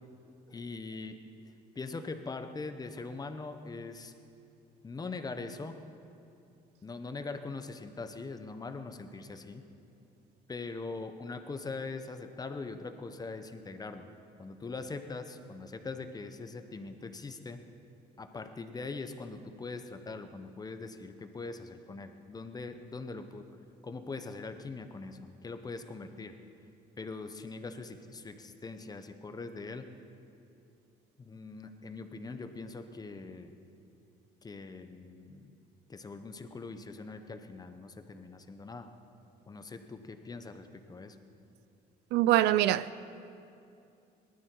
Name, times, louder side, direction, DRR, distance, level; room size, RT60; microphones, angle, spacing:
voice 1, 0.5-1.2 1.4-4.1 4.8-5.8 6.8-9.6 10.5-14.1 14.4-17.6 18.2-23.4 23.8-26.3 27.0-29.8 31.2-33.5 34.4-35.5 35.9-38.9 39.5-41.2, left 3 dB, 20° left, 1.0 m, -42 dB
voice 2, 42.1-43.0, right 14 dB, 85° right, 0.4 m, -25 dB
19.0 x 12.5 x 4.6 m
cardioid pair, 110°, 17 cm